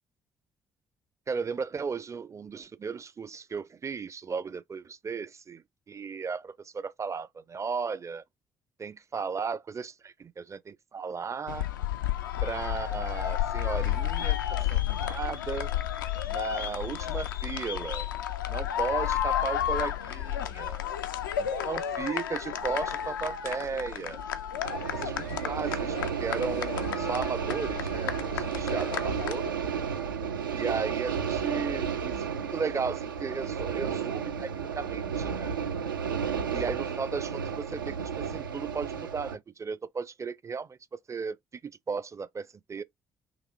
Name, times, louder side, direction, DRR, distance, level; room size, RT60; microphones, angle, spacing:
voice 1, 1.3-8.2 8.8-11.7 12.4-14.4 14.7-15.7 16.3-18.1 18.5-20.8 21.4-24.2 24.9-29.4 30.5-35.6 36.5-41.6 41.9-42.8, right 5 dB, 30° right, 0.5 m, -35 dB
sound 1, 11.5-29.5, left 10 dB, 80° left, 0.4 m, -32 dB
sound 2, 24.6-39.4, right 7 dB, 80° right, 0.5 m, -32 dB
5.9 x 2.9 x 2.3 m
figure-of-eight pair, 45°, 11 cm